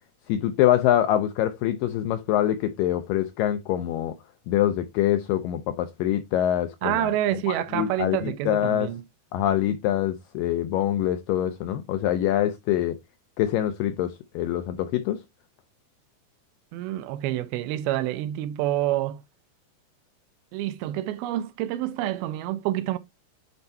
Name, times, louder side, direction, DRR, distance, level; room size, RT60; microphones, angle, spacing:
voice 1, 0.3-4.2 4.5-7.1 7.5-8.9 9.3-13.0 13.4-15.2, left 12 dB, 85° left, 1.9 m, -25 dB
voice 2, 6.8-9.0 16.7-19.2 20.5-23.0, right 13 dB, 80° right, 2.4 m, -27 dB
9.6 x 4.4 x 2.7 m
omnidirectional pair, 4.6 m